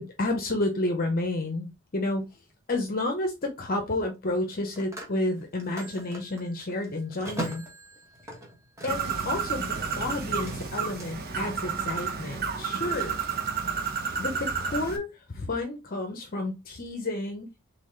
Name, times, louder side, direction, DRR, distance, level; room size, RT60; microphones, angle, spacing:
voice 1, 0.0-1.7 1.9-2.2 2.7-7.6 8.8-13.2 14.2-17.5, left 2 dB, 40° left, 0.7 m, -30 dB
Telephone, 2.2-2.4 4.3-9.2 9.5-11.1, right 1 dB, 15° right, 1.3 m, -40 dB
Bird, 8.9-15.0, right 6 dB, 45° right, 0.9 m, -31 dB
4.1 x 3.6 x 3.1 m
head